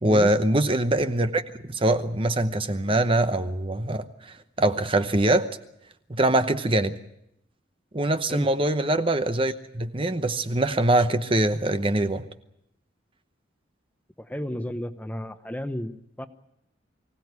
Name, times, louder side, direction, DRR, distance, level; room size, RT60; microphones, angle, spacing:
voice 1, 0.0-1.4 1.7-5.5 6.1-6.9 7.9-12.2, right 1 dB, 30° right, 10 dB, 0.9 m, -23 dB
voice 2, 14.2-16.3, equal, 10° left, 9 dB, 0.9 m, -33 dB
24.0 x 17.0 x 9.6 m, 0.80 s
head